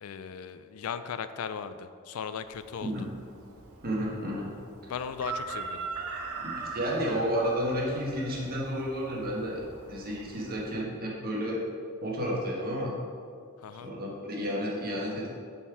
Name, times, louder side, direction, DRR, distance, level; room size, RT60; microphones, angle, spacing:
voice 1, 0.0-3.1 4.9-5.9 13.6-13.9, left 7 dB, 85° left, 12 dB, 0.4 m, -37 dB
Chicken rooster, 2.5-10.8, right 4 dB, 85° right, 0.8 m, -41 dB
voice 2, 3.8-4.5 6.3-9.6 9.9-11.6 12.0-12.9 13.8-15.3, equal, 45° right, -4 dB, 1.5 m, -31 dB
7.2 x 4.4 x 4.6 m, 2.3 s
head